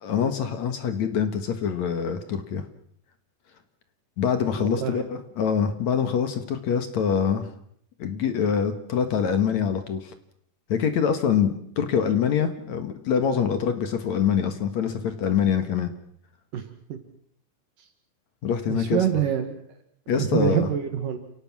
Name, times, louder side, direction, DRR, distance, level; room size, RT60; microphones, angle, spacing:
voice 1, 0.0-2.6 4.2-7.5 8.0-10.1 10.7-15.9 18.4-19.0 20.1-20.7, left 7 dB, 60° left, 9 dB, 2.5 m, -25 dB
voice 2, 4.6-5.0 16.5-16.6 16.9-17.0 18.7-19.6 20.2-21.2, right 10 dB, 70° right, 7 dB, 3.2 m, -25 dB
29.5 x 18.0 x 6.2 m, 0.67 s
omnidirectional pair, 4.2 m